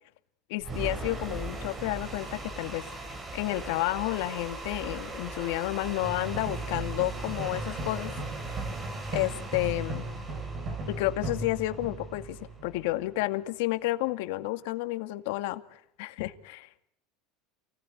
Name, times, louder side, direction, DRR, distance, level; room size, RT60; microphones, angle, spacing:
voice 1, 0.5-8.1 9.1-10.0 11.0-16.8, left 18 dB, 75° left, 9 dB, 2.2 m, -31 dB
sound 1, 0.6-12.7, right 2 dB, 20° right, 3.5 m, -40 dB
sound 2, 6.0-13.3, right 2 dB, 40° right, 7.1 m, -37 dB
29.0 x 18.5 x 9.9 m, 0.74 s
supercardioid pair, 145°, 0 cm